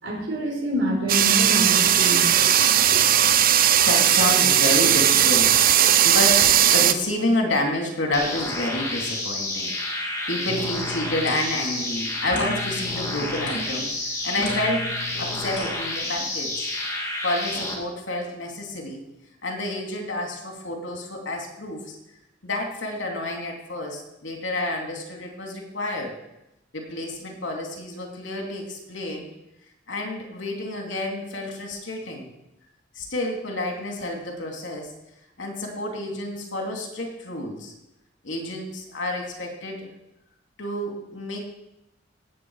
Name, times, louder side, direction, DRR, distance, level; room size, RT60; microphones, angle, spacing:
voice 1, 0.0-2.4, equal, 70° right, 0 dB, 4.3 m, -26 dB
sound 1, 1.1-6.9, right 10 dB, 50° right, 0.6 m, -18 dB
voice 2, 3.8-9.7 10.3-14.9 15.2-16.7 17.2-19.0 19.4-22.0 22.4-26.1 26.7-29.3 29.9-32.3 32.9-34.9 35.4-37.7 38.2-39.9 40.6-41.4, left 1 dB, 75° left, 1 dB, 2.9 m, -29 dB
sound 2, 8.1-17.7, left 2 dB, 15° left, 2.0 m, -30 dB
sound 3, 10.5-16.3, left 2 dB, 60° left, 4.7 m, -37 dB
17.0 x 8.0 x 4.9 m, 0.87 s
head